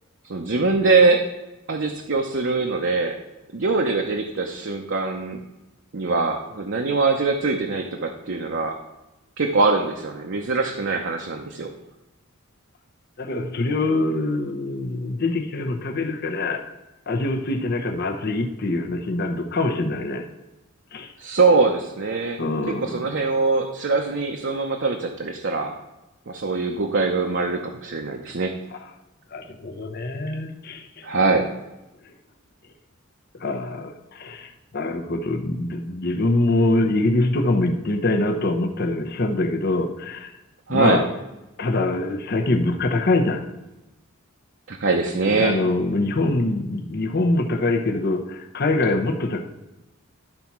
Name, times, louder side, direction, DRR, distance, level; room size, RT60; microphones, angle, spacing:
voice 1, 0.2-1.2 1.7-3.2 3.5-5.4 5.9-8.8 9.4-11.7 21.2-22.4 22.7-25.8 26.3-28.5 31.0-31.5 40.7-41.0 44.7-45.6, right 3 dB, 55° right, 2 dB, 0.7 m, -22 dB
voice 2, 13.2-16.6 17.1-20.2 20.9-21.1 22.4-23.0 29.3-31.1 33.4-40.3 40.7-41.1 41.6-43.4 45.4-49.4, left 2 dB, 45° left, 4 dB, 0.8 m, -24 dB
12.0 x 4.1 x 5.9 m, 1.0 s
head